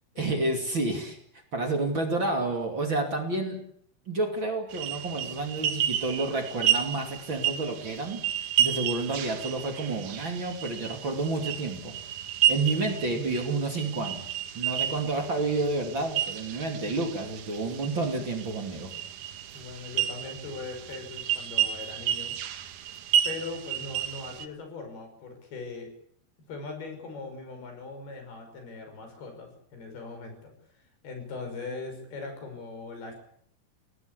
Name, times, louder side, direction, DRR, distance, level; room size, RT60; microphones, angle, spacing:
voice 1, 0.2-1.2 1.5-3.6 4.1-8.2 8.6-12.0 12.5-14.2 14.5-18.9, right 2 dB, 35° right, 4 dB, 3.0 m, -30 dB
sound 1, 4.7-24.5, right 10 dB, 65° right, 2.5 m, -31 dB
voice 2, 19.5-22.4 23.2-25.9 26.5-33.1, left 3 dB, 80° left, 5 dB, 7.6 m, -40 dB
25.0 x 18.0 x 8.4 m, 0.65 s
omnidirectional pair, 4.4 m